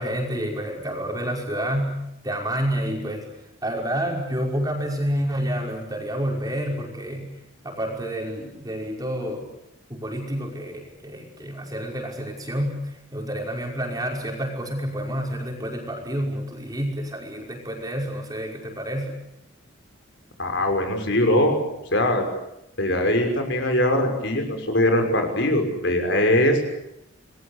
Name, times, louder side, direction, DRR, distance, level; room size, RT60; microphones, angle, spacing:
voice 1, 0.0-3.3 3.6-7.3 7.6-9.5 9.9-19.2, equal, 20° right, 1 dB, 5.6 m, -29 dB
voice 2, 20.4-21.6 21.9-22.2 22.8-26.6, left 1 dB, 55° left, 4 dB, 6.2 m, -21 dB
28.5 x 21.5 x 8.6 m, 0.82 s
head